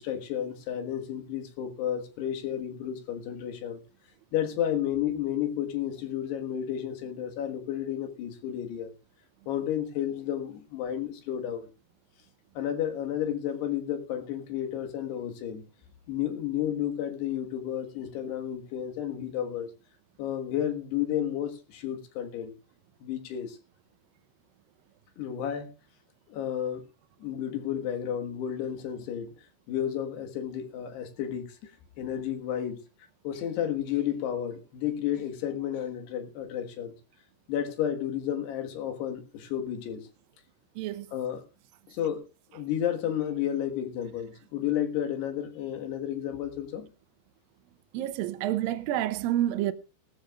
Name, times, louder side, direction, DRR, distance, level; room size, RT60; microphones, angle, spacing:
voice 1, 0.0-3.8 4.3-8.9 9.5-11.7 12.6-15.6 16.1-19.7 20.2-22.5 23.0-23.6 25.2-25.7 26.3-26.9 27.2-29.3 29.7-31.7 32.0-32.8 33.2-37.0 37.5-40.1 41.1-41.4 41.9-42.3 42.5-46.9, left 10 dB, 70° left, 3.5 m, -32 dB
voice 2, 40.8-41.1 47.9-49.7, right 13 dB, 85° right, 2.0 m, -28 dB
19.0 x 13.5 x 2.4 m
omnidirectional pair, 5.1 m